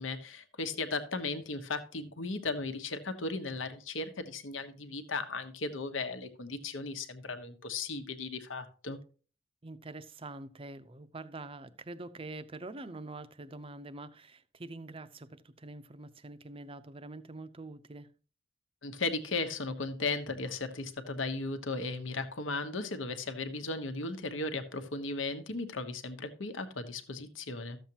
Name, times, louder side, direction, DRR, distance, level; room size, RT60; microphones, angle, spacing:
voice 1, 0.0-9.0 18.8-27.8, left 3 dB, 80° left, 1.1 m, -36 dB
voice 2, 9.6-18.1, right 2 dB, 30° right, 0.6 m, -45 dB
13.5 x 7.2 x 2.9 m
head